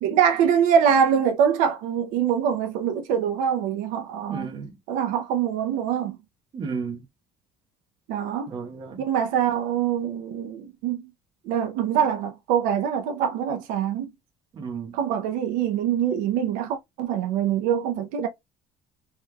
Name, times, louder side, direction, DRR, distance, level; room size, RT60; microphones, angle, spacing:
voice 1, 0.0-4.5 4.9-6.2 8.1-8.5 9.0-11.1 11.5-14.1 14.9-18.3, right 8 dB, 80° right, 0.7 m, -24 dB
voice 2, 4.3-4.7 6.5-7.0 8.5-9.0 14.5-14.9, right 5 dB, 35° right, 1.0 m, -33 dB
3.3 x 3.2 x 2.2 m
cardioid pair, 170°, 13 cm